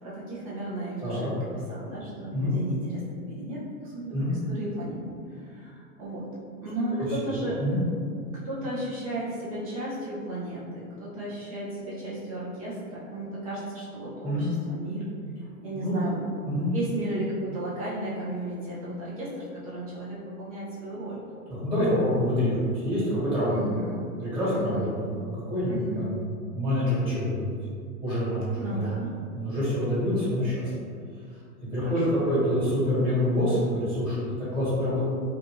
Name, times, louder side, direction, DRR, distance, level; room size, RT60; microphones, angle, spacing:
voice 1, 0.0-5.0 5.3-6.3 6.6-7.6 8.2-15.0 15.6-16.2 16.7-21.2 23.5-24.1 24.5-24.9 25.7-26.2 28.5-29.1 31.8-32.3, right 1 dB, 25° right, -7 dB, 0.3 m, -34 dB
voice 2, 7.0-7.8 14.2-14.5 15.7-15.9 16.4-16.7 21.5-23.6 24.2-26.1 26.5-27.5 28.0-28.9 29.3-30.7 31.7-35.0, equal, 10° right, -12 dB, 1.2 m, -26 dB
2.6 x 2.2 x 2.9 m, 2.2 s
hypercardioid pair, 145°, 45 cm